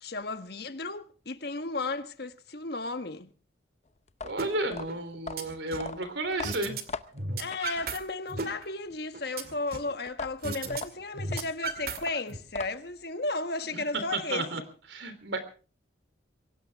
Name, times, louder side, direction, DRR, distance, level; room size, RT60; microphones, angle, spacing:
voice 1, 0.0-3.3 7.4-14.5, left 3 dB, 55° left, 1.3 m, -34 dB
sound 1, 4.1-8.4 10.1-13.0, left 4 dB, 35° left, 0.7 m, -40 dB
voice 2, 4.2-6.7 13.7-13.8 14.1-14.6 14.9-15.4, right 2 dB, 70° right, 3.3 m, -32 dB
sound 2, 4.4-4.5 4.9-5.9 6.4-6.8 7.1-8.0 8.3-9.9 10.4-10.8 11.1-12.4, right 3 dB, 50° right, 2.2 m, -35 dB
23.0 x 18.0 x 3.5 m
head